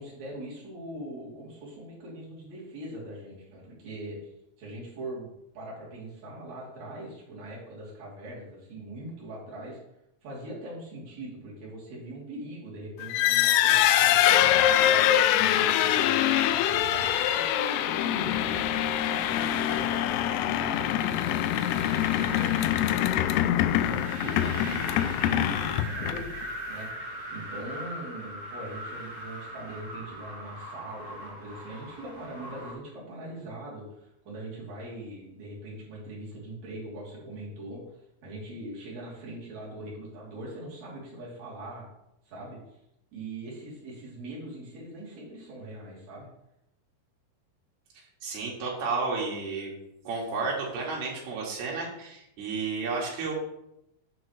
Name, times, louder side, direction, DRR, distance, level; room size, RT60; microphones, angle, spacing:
voice 1, 0.0-4.3 4.6-9.8 10.2-14.4 14.8-18.6 19.0-22.6 22.8-23.2 23.8-26.9 27.3-37.8 38.2-41.8 42.3-42.8 43.1-46.3, right 1 dB, 45° right, -7 dB, 4.1 m, -41 dB
sound 1, 13.0-26.4, left 12 dB, 90° left, 2.7 m, -24 dB
sound 2, 14.2-32.7, right 1 dB, 25° right, 3.0 m, -42 dB
voice 2, 48.0-49.7 50.1-53.3, right 4 dB, 70° right, -3 dB, 3.9 m, -32 dB
11.5 x 6.0 x 3.2 m, 0.83 s
omnidirectional pair, 4.7 m